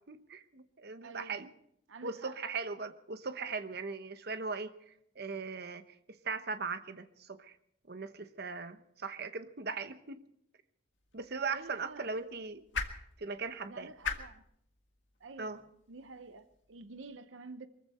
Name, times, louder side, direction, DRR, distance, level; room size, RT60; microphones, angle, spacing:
voice 1, 0.1-1.5 2.0-7.6 7.9-10.2 11.1-12.6 13.2-13.9 15.4-15.6, right 4 dB, 55° right, 10 dB, 0.9 m, -39 dB
voice 2, 1.0-1.4 1.9-2.4 11.5-12.3 13.7-14.4 15.2-15.6 15.9-17.7, right 3 dB, 80° right, 11 dB, 0.8 m, -49 dB
sound 1, 10.9-17.2, left 5 dB, 70° left, 1.7 m, -44 dB
23.0 x 14.5 x 4.2 m, 0.71 s
head